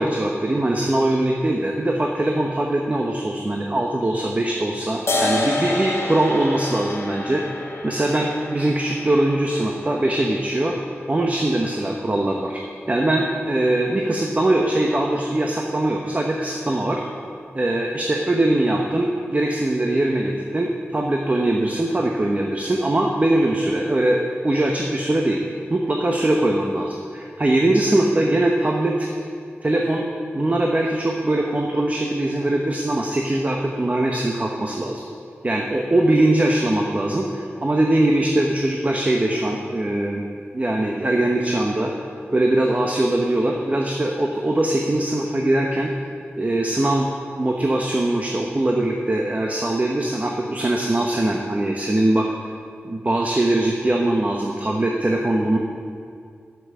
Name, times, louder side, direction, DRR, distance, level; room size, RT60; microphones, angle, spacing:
voice 1, 0.0-7.4 7.8-10.7 11.1-12.6 12.9-17.0 17.5-25.4 25.7-29.1 29.6-30.0 30.3-35.0 35.4-40.2 40.5-41.9 42.3-45.9 46.3-47.1 47.4-52.3 52.8-55.6, right 1 dB, 35° right, 1 dB, 0.9 m, -21 dB
sound 1, 5.1-12.0, left 2 dB, 85° left, 1.9 m, -29 dB
10.0 x 7.2 x 7.2 m, 2.2 s
wide cardioid pair, 80°, 5 cm